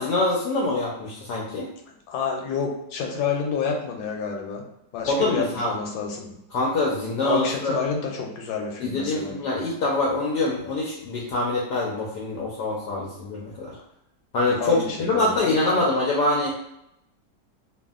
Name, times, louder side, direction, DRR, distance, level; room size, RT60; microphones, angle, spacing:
voice 1, 0.0-1.7 5.1-5.7 6.5-7.7 8.8-13.7 14.3-16.5, left 2 dB, 70° left, -4 dB, 1.1 m, -24 dB
voice 2, 2.1-4.6 4.9-6.3 7.2-9.3 14.6-15.8, left 6 dB, 85° left, 1 dB, 1.4 m, -29 dB
2.7 x 2.6 x 2.3 m, 0.79 s
omnidirectional pair, 2.0 m